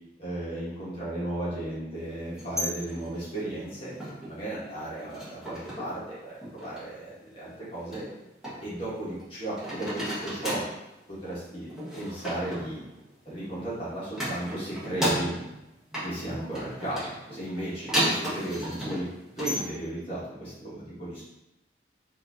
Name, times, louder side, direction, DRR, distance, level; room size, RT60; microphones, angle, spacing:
voice 1, 0.2-3.9 4.3-8.0 8.6-10.6 11.1-11.7 12.0-12.8 13.2-15.3 16.0-19.1 19.4-21.2, right 1 dB, 30° left, -10 dB, 1.2 m, -35 dB
sound 1, 2.3-4.4 4.8-6.0 6.3-6.9 7.9-9.3 9.6-10.8 11.7-13.7 14.1-15.6 15.9-19.6, equal, 5° right, 0.9 m, -34 dB
4.1 x 2.5 x 2.7 m, 0.91 s
head